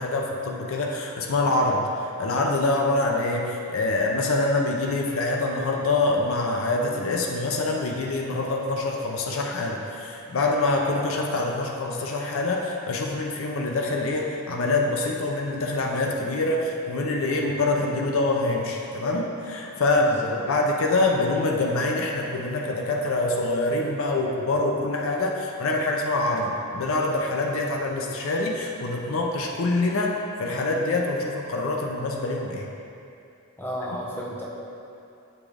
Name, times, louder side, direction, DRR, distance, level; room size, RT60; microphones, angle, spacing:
voice 1, 0.0-32.7, left 2 dB, 70° left, 0 dB, 0.6 m, -25 dB
voice 2, 33.6-34.5, equal, 10° left, -5 dB, 0.8 m, -33 dB
8.2 x 3.6 x 3.4 m, 2.7 s
head